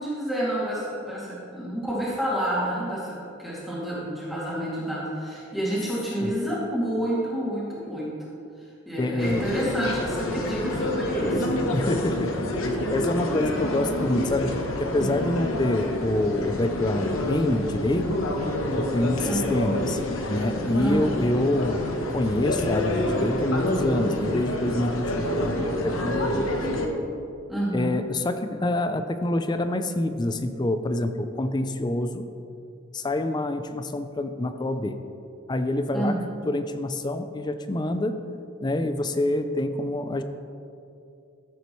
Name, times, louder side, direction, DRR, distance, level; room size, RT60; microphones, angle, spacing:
voice 1, 0.0-8.1 8.9-11.5 19.2-19.6 20.8-21.3 27.5-28.0 35.9-36.2, right 1 dB, ahead, -9 dB, 2.4 m, -29 dB
voice 2, 9.0-9.5 11.7-12.6 12.9-18.1 18.8-20.0 20.3-26.6 27.7-32.3 32.9-35.0 35.5-36.2 36.5-38.2 38.6-40.2, left 1 dB, 20° left, 9 dB, 0.4 m, -26 dB
sound 1, 9.2-26.9, left 1 dB, 85° left, 1.1 m, -28 dB
14.0 x 8.3 x 3.2 m, 2.6 s
head